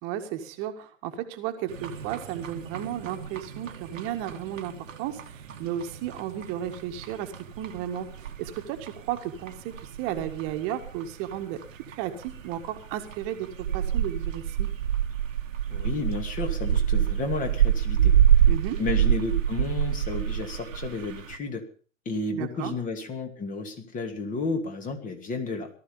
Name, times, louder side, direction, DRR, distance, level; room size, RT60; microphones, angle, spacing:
voice 1, 0.0-4.7 5.0-11.6 11.9-13.5 13.7-14.7 18.5-18.8 22.3-22.7, right 11 dB, 35° right, 6 dB, 1.9 m, -34 dB
sound 1, 1.7-21.4, right 9 dB, 70° right, 1.7 m, -28 dB
voice 2, 15.7-18.1 18.8-21.6 22.1-25.7, left 3 dB, 20° left, 6 dB, 2.6 m, -32 dB
18.5 x 13.0 x 5.4 m, 0.41 s
hypercardioid pair, 120°, 40 cm